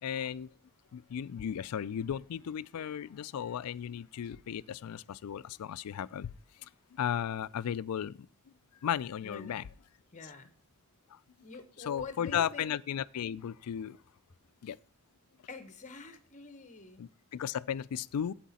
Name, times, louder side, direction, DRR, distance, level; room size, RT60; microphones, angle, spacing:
voice 1, 0.0-0.5 0.9-6.3 6.9-8.3 8.8-9.6 11.1-11.2 11.8-14.0 14.6-14.8 17.0-18.3, left 9 dB, 80° left, 0.4 m, -35 dB
voice 2, 9.2-9.7 10.1-10.5 11.4-12.7 15.5-17.1, left 4 dB, 35° left, 1.0 m, -46 dB
10.0 x 8.3 x 4.2 m
head